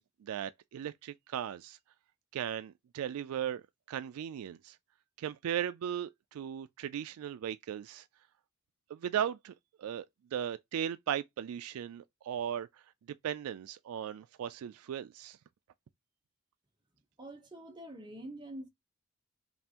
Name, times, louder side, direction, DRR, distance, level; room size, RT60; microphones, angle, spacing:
voice 1, 0.0-1.8 2.3-4.8 5.2-8.1 8.9-9.5 9.8-10.1 10.3-12.8 13.2-15.4, right 9 dB, 90° right, 0.3 m, -37 dB
voice 2, 17.2-18.7, right 1 dB, 20° right, 0.9 m, -45 dB
5.3 x 2.5 x 2.8 m
head